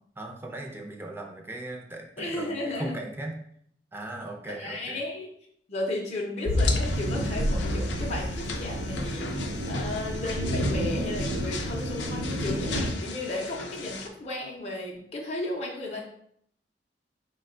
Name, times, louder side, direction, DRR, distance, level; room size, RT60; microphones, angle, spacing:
voice 1, 0.2-3.3 3.9-5.0, right 2 dB, 15° right, 1 dB, 0.6 m, -38 dB
voice 2, 2.2-2.9 4.5-5.3 5.7-16.0, left 2 dB, 40° left, -2 dB, 0.6 m, -34 dB
sound 1, 6.5-12.9, equal, 90° right, 0.6 m, -29 dB
sound 2, 6.6-14.1, left 4 dB, 90° left, 0.5 m, -37 dB
4.8 x 2.2 x 3.7 m, 0.66 s
head